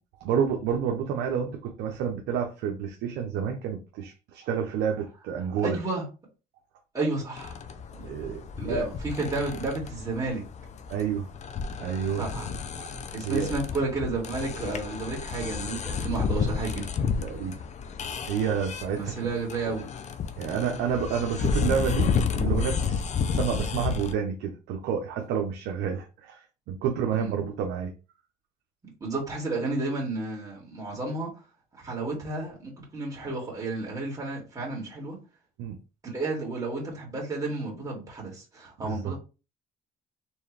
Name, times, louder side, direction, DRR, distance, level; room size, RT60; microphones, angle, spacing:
voice 1, 0.2-5.8 8.0-8.8 10.9-11.3 11.8-12.2 12.8-13.5 17.2-17.6 18.3-19.1 19.7-19.8 20.4-22.1 22.4-23.0 23.3-27.9 35.6-35.8 38.8-39.1, right 7 dB, 90° right, 0.7 m, -29 dB
voice 2, 5.6-6.0 6.9-7.6 8.0-8.3 8.6-10.4 12.2-12.6 13.1-16.9 19.0-19.9 27.1-27.3 29.0-31.3 31.8-35.2 36.0-39.2, right 3 dB, 20° right, 2.5 m, -32 dB
sound 1, 7.4-24.1, left 5 dB, 45° left, 0.6 m, -31 dB
4.5 x 3.3 x 3.3 m
cardioid pair, 110°, 17 cm